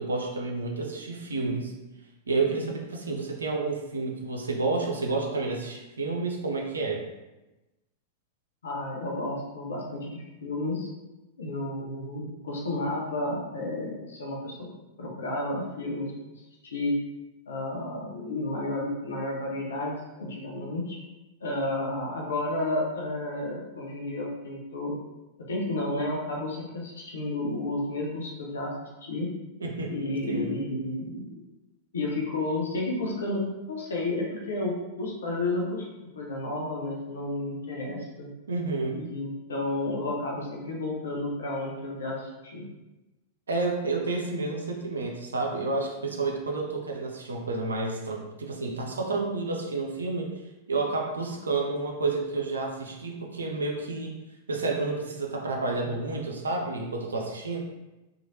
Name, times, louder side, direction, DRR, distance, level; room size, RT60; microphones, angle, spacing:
voice 1, 0.0-1.7 2.3-7.0 29.6-30.7 38.5-39.0 43.5-50.3 50.7-54.1 54.5-57.6, right 3 dB, 75° right, 0 dB, 0.5 m, -30 dB
voice 2, 8.6-10.9 11.4-14.6 15.0-16.1 16.6-16.9 17.5-21.0 21.4-25.0 25.5-29.3 29.9-31.4 31.9-35.9 36.2-38.3 38.9-42.6, left 2 dB, 70° left, -2 dB, 0.6 m, -31 dB
3.1 x 2.4 x 2.6 m, 1.0 s
figure-of-eight pair, 95°, 0 cm